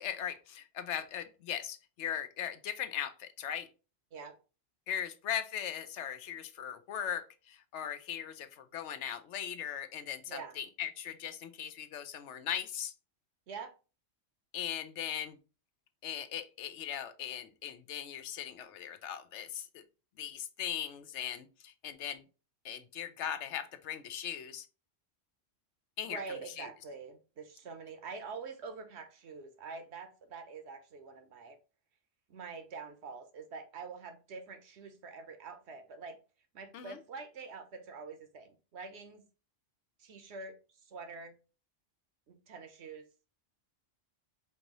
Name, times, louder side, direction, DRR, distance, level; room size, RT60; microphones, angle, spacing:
voice 1, 0.0-3.7 4.9-12.9 14.5-15.4 16.0-19.8 20.2-22.2 22.6-24.7 26.0-26.7 36.7-37.0, left 9 dB, 75° left, 10 dB, 0.9 m, -39 dB
voice 2, 26.0-31.6 32.3-36.2 36.5-39.2 40.0-40.6 40.8-41.3 42.3-43.1, right 4 dB, 65° right, 8 dB, 1.0 m, -45 dB
4.6 x 2.6 x 2.9 m, 0.33 s
omnidirectional pair, 1.2 m